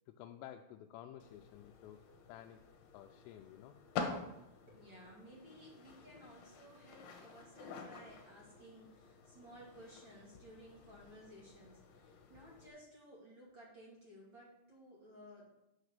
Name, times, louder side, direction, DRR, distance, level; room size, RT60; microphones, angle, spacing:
voice 1, 0.1-2.6 2.9-3.8, left 11 dB, 85° left, 3 dB, 3.2 m, -53 dB
sound 1, 1.2-12.7, left 5 dB, 65° left, 2.8 m, -49 dB
voice 2, 4.6-15.5, equal, 40° right, -5 dB, 1.8 m, -57 dB
8.6 x 6.7 x 6.6 m, 0.90 s
omnidirectional pair, 5.9 m